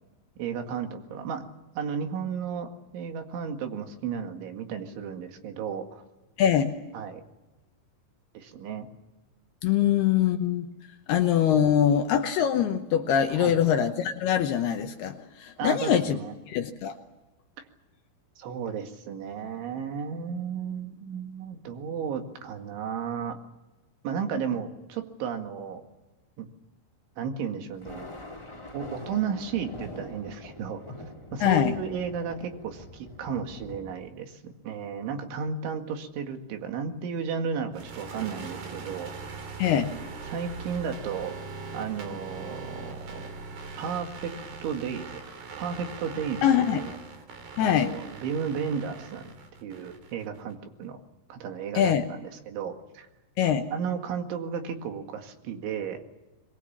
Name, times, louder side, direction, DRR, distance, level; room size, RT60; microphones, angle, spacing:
voice 1, 0.4-1.5 1.8-6.0 6.9-7.2 8.3-8.9 13.3-13.6 15.6-16.3 17.6-17.7 18.4-23.4 24.0-25.8 26.4-26.5 27.2-28.1 28.7-30.8 31.3-39.1 40.3-41.3 41.7-43.3 43.8-44.4 44.6-46.9 47.6-49.3 49.6-51.0 51.3-52.2 52.5-53.1 53.7-56.0, right 6 dB, 75° right, 5 dB, 4.4 m, -33 dB
voice 2, 6.4-6.7 9.6-10.7 11.1-16.2 16.5-17.0 31.4-31.8 39.6-39.9 46.4-47.0 47.6-47.9 51.7-52.0 53.4-53.7, left 9 dB, 70° left, 6 dB, 2.6 m, -23 dB
Thunder, 27.7-33.9, left 1 dB, 10° left, 1.8 m, -43 dB
sound 1, 37.7-50.5, right 4 dB, 55° right, 4.6 m, -41 dB
26.0 x 22.0 x 7.4 m, 1.1 s
omnidirectional pair, 5.5 m